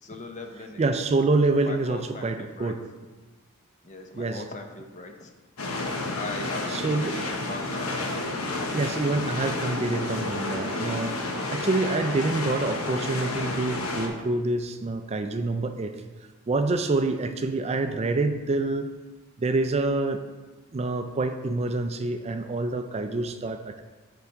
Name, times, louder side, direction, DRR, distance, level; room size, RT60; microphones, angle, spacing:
voice 1, 0.0-1.0 1.6-2.7 3.8-5.3 6.2-7.9, left 2 dB, 35° left, 4 dB, 0.7 m, -39 dB
voice 2, 0.5-2.8 4.1-4.5 6.3-7.2 8.7-11.2 11.5-15.9 16.5-18.9 19.4-20.2 20.7-23.8, right 3 dB, 30° right, 8 dB, 0.4 m, -27 dB
sound 1, 5.6-14.1, left 2 dB, 85° left, 1.0 m, -30 dB
5.7 x 4.7 x 6.4 m, 1.3 s
head